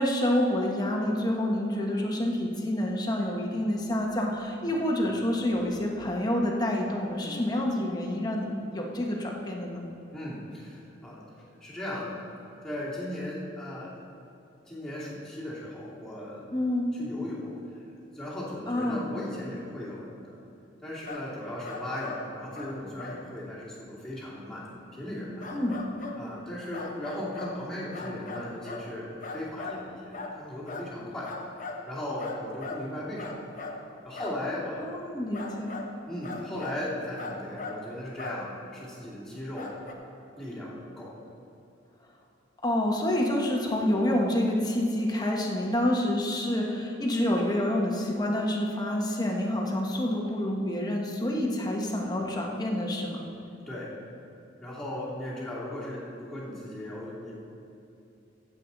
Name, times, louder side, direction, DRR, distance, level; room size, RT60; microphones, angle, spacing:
voice 1, 0.0-9.8 16.5-16.9 18.7-19.1 25.5-25.8 34.8-35.8 42.6-53.2, left 1 dB, 20° left, 0 dB, 1.3 m, -28 dB
voice 2, 10.1-11.2 11.6-12.3 12.6-14.0 14.7-16.5 16.9-17.6 18.1-20.4 20.8-24.7 24.9-25.5 26.2-31.3 31.8-33.5 34.0-34.8 36.1-39.7 40.4-41.1 53.7-53.9 54.6-57.3, left 1 dB, 5° left, -9 dB, 2.7 m, -37 dB
sound 1, 21.1-21.3 21.6-22.2 22.5-22.7 23.0-23.2 25.4-26.2 26.7-27.6 27.9-28.8 29.2-29.8 30.1-30.4 30.7-30.9 31.2-31.8 32.2-32.8 33.2-33.8 34.1-34.4 35.3-35.9 36.2-36.8 37.2-37.8 38.2-38.4 39.6-39.9, left 3 dB, 45° left, 1.1 m, -38 dB
15.5 x 7.6 x 4.0 m, 2.9 s
head